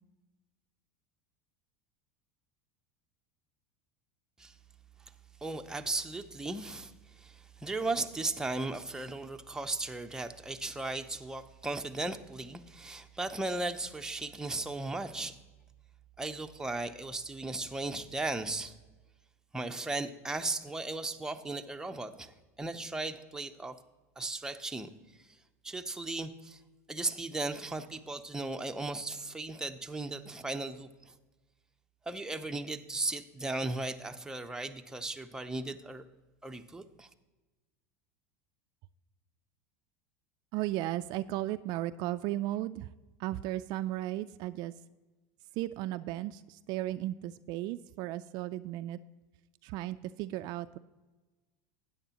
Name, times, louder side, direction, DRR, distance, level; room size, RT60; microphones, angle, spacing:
voice 1, 5.4-6.9 7.2-15.4 16.2-18.7 19.5-23.7 24.2-24.9 25.6-26.6 26.9-31.1 32.1-36.0 36.4-37.1, right 2 dB, 5° right, 5 dB, 0.7 m, -36 dB
voice 2, 40.5-42.9 43.2-44.7 45.6-49.0 49.6-50.8, right 15 dB, 55° right, 12 dB, 0.3 m, -35 dB
13.0 x 9.3 x 2.9 m, 1.2 s
supercardioid pair, 105°, 9 cm